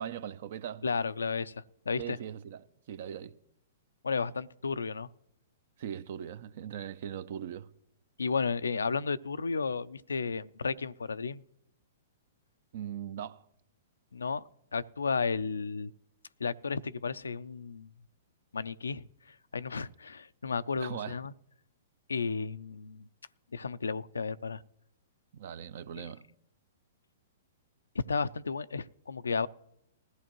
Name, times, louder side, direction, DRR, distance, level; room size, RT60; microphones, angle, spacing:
voice 1, 0.0-0.8 2.0-3.3 5.8-7.7 12.7-13.5 20.4-21.3 25.3-26.2, right 9 dB, 60° right, 0.6 m, -40 dB
voice 2, 0.8-2.2 4.0-5.1 8.2-11.4 14.1-14.4 14.7-15.9 16.4-17.9 18.5-19.1 19.5-21.3 22.1-23.1 23.5-24.6 26.0-26.1 27.9-29.5, left 5 dB, 90° left, 0.4 m, -33 dB
20.0 x 14.0 x 3.0 m
hypercardioid pair, 125°, 0 cm